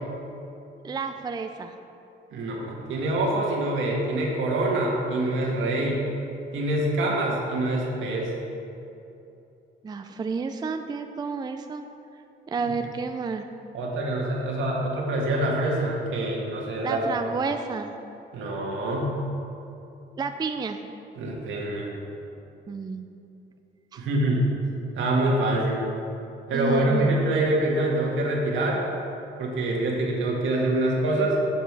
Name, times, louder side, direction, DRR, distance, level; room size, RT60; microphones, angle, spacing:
voice 1, 0.8-1.8 9.8-11.8 12.5-13.5 16.8-17.9 20.2-20.8 22.7-23.1 23.9-24.1 26.5-27.2, right 5 dB, 20° right, 7 dB, 0.4 m, -30 dB
voice 2, 2.3-6.0 6.5-8.3 13.7-17.0 18.3-19.2 21.2-21.9 24.0-24.5 24.9-25.8 26.5-28.8 29.4-31.4, right 1 dB, 80° right, -2 dB, 1.7 m, -25 dB
7.3 x 6.8 x 4.7 m, 2.8 s
cardioid pair, 90°, 20 cm